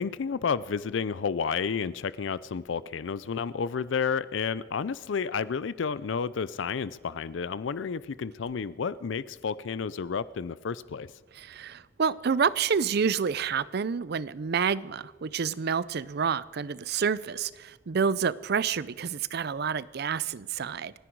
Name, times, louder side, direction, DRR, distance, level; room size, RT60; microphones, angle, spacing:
voice 1, 0.0-11.1, left 6 dB, 65° left, 17 dB, 0.4 m, -31 dB
voice 2, 11.3-20.9, right 6 dB, 55° right, 19 dB, 0.5 m, -28 dB
28.5 x 10.0 x 4.6 m, 1.3 s
head